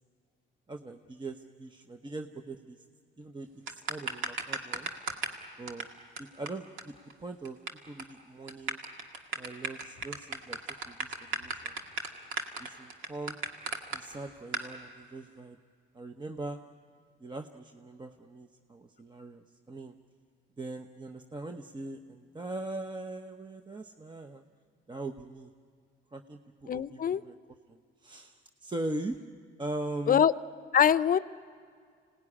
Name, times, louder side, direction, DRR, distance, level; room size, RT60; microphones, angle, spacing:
voice 1, 0.7-2.8 3.2-4.9 5.6-5.9 6.2-6.9 7.2-7.6 7.9-8.8 9.3-11.8 12.6-13.4 13.9-15.6 15.9-16.6 17.2-20.0 20.6-24.4 24.9-25.5 26.1-27.3 27.7-29.2 29.6-30.2, right 2 dB, 25° right, 6 dB, 0.9 m, -41 dB
sound 1, 3.7-5.4 5.7-5.8 6.2-6.3 6.5-6.6 6.8-6.9 7.1-7.7 8.0-8.1 8.5-14.0 14.5-14.7, right 3 dB, 85° right, 2.0 m, -34 dB
voice 2, 26.7-27.2 30.1-30.3 30.7-31.2, left 9 dB, 45° left, 16 dB, 0.6 m, -23 dB
26.0 x 18.5 x 9.9 m, 2.1 s
cardioid pair, 90°, 20 cm